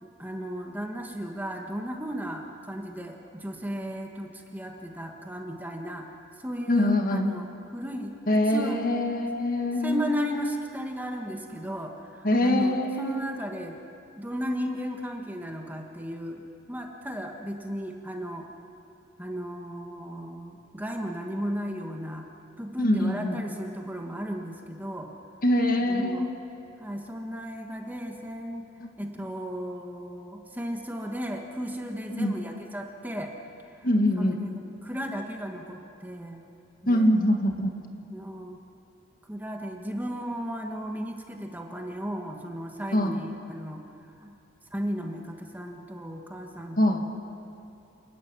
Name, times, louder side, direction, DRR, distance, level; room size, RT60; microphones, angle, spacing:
voice 1, 0.0-6.0 6.4-7.5 7.7-8.8 9.8-13.8 14.2-16.4 16.7-18.5 19.2-22.3 22.6-25.1 25.8-26.3 26.8-28.7 29.0-33.3 33.7-33.9 34.2-34.3 34.8-36.4 36.8-37.1 38.1-38.6 39.3-43.8 44.2-44.3 44.7-47.1, equal, 10° right, 2 dB, 1.4 m, -35 dB
voice 2, 6.7-7.3 8.3-10.1 12.2-13.2 22.8-23.4 25.4-26.3 28.8-28.9 32.1-32.3 33.8-34.4 36.9-37.7 42.9-43.2 46.8-47.1, left 1 dB, 45° left, 4 dB, 1.8 m, -24 dB
28.5 x 13.5 x 9.5 m, 2.6 s
head